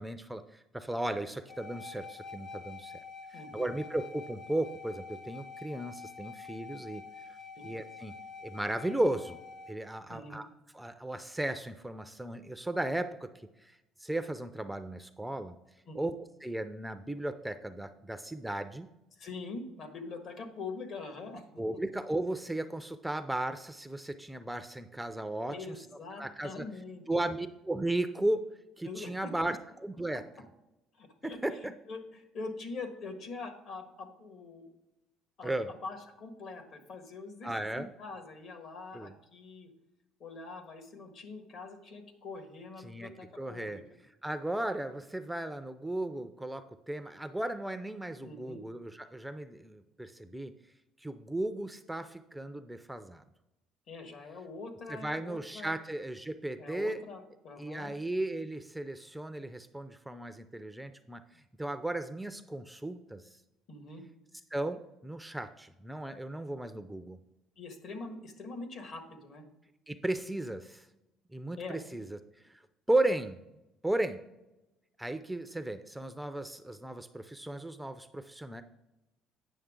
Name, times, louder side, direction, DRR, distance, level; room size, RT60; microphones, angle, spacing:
voice 1, 0.0-2.9 3.3-7.0 7.3-7.4 7.6-8.1 8.4-9.4 9.7-10.5 10.7-13.3 13.6-15.6 15.9-16.1 16.4-18.9 21.6-25.9 26.2-26.7 27.1-28.4 28.8-30.2 31.2-31.7 35.4-35.7 37.4-37.9 38.9-39.1 42.8-43.1 43.4-43.8 44.2-50.5 51.0-53.2 54.9-57.0 57.6-63.4 64.5-67.2 69.9-70.9 71.3-72.2 72.4-72.5 72.9-73.4 73.8-74.2 75.0-78.6, right 1 dB, 5° right, 9 dB, 0.4 m, -35 dB
sound 1, 1.5-9.7, left 5 dB, 40° left, 0.8 m, -47 dB
voice 2, 3.3-3.7 7.6-7.7 10.1-10.4 15.9-16.1 19.2-21.4 25.5-27.0 28.8-29.5 30.9-34.7 35.4-35.5 35.8-39.7 40.2-43.8 48.2-48.6 53.9-55.7 56.6-57.9 63.7-64.0 67.6-69.5 71.6-71.8, left 3 dB, 55° left, 6 dB, 1.6 m, -44 dB
9.1 x 6.3 x 3.7 m, 0.95 s
cardioid pair, 110°, 0 cm